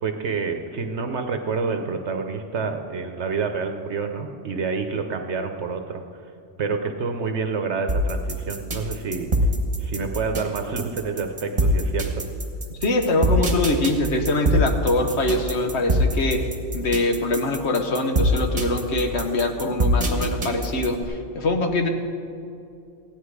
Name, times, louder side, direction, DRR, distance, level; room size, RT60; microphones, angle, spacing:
voice 1, 0.0-6.0 6.6-9.3 9.8-12.2, right 5 dB, 70° right, 6 dB, 1.0 m, -28 dB
sound 1, 7.9-21.0, equal, 30° right, 1.3 m, -23 dB
voice 2, 12.8-16.5 16.7-21.9, left 2 dB, 65° left, 5 dB, 1.4 m, -23 dB
15.5 x 10.5 x 4.8 m, 2.5 s
omnidirectional pair, 1.2 m